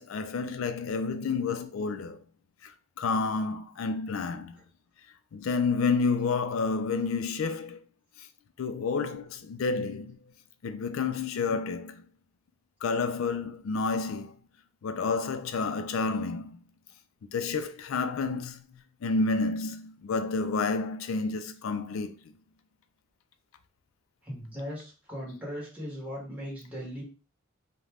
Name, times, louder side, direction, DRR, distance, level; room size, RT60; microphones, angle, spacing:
voice 1, 0.0-2.2 2.6-2.7 3.0-4.5 5.3-7.8 8.6-10.2 10.6-12.0 12.8-14.3 14.8-16.6 17.3-18.6 19.0-22.1, left 4 dB, 70° left, 0.4 m, -29 dB
voice 2, 24.2-27.0, equal, 5° right, 0.9 m, -38 dB
2.5 x 2.2 x 3.3 m
head